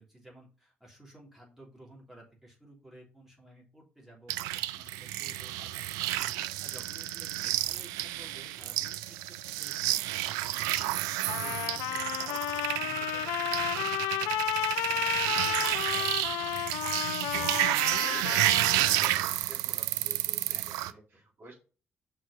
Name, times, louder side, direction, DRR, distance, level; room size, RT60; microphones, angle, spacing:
voice 1, 0.0-6.3 6.6-18.8 19.4-19.6 20.1-21.2, right 1 dB, 5° right, -2 dB, 3.2 m, -55 dB
sound 1, 4.3-20.9, right 15 dB, 65° right, 0.4 m, -31 dB
Trumpet, 11.3-19.0, left 13 dB, 65° left, 0.4 m, -32 dB
voice 2, 15.7-16.1 17.8-21.6, right 2 dB, 40° right, -3 dB, 3.5 m, -51 dB
5.9 x 4.7 x 5.3 m, 0.36 s
figure-of-eight pair, 45°, 6 cm